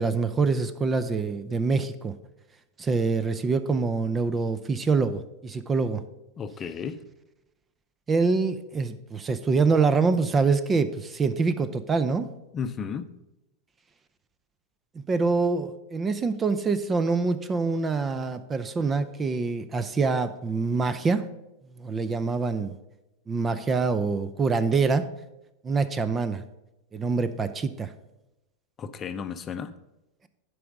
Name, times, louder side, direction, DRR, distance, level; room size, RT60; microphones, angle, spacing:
voice 1, 0.0-2.1 2.8-6.0 8.1-12.3 15.1-21.2 21.8-22.7 23.3-25.1 25.6-26.4 26.9-27.9, right 4 dB, 20° right, 12 dB, 0.6 m, -25 dB
voice 2, 6.4-7.0 12.5-13.1 28.8-29.7, left 6 dB, 30° left, 10 dB, 0.6 m, -33 dB
11.0 x 4.8 x 5.2 m, 0.95 s
hypercardioid pair, 95°, 0 cm